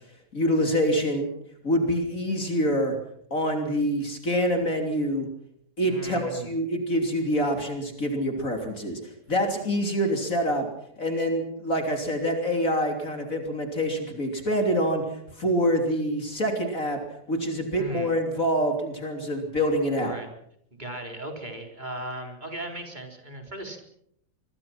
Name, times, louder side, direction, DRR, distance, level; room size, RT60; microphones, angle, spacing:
voice 1, 0.3-1.3 1.6-2.9 3.3-5.3 5.8-9.0 9.3-10.7 11.0-17.0 17.3-20.2, equal, 50° left, 4 dB, 3.7 m, -26 dB
voice 2, 5.8-6.5 17.7-18.2 20.0-20.3 20.7-23.8, right 1 dB, 25° right, 3 dB, 4.5 m, -37 dB
25.0 x 22.5 x 6.0 m, 0.72 s
omnidirectional pair, 1.9 m